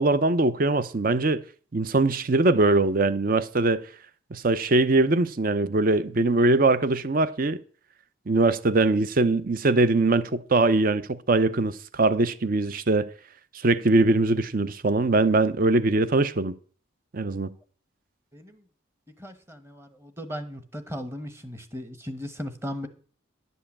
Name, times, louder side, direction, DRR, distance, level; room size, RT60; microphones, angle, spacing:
voice 1, 0.0-1.4 1.7-3.8 4.3-7.6 8.3-13.1 13.5-16.5 17.1-17.5, right 2 dB, 45° right, 0.6 m, -22 dB
voice 2, 18.3-18.6 19.2-22.9, equal, 10° right, 1.1 m, -37 dB
11.0 x 5.6 x 8.5 m
head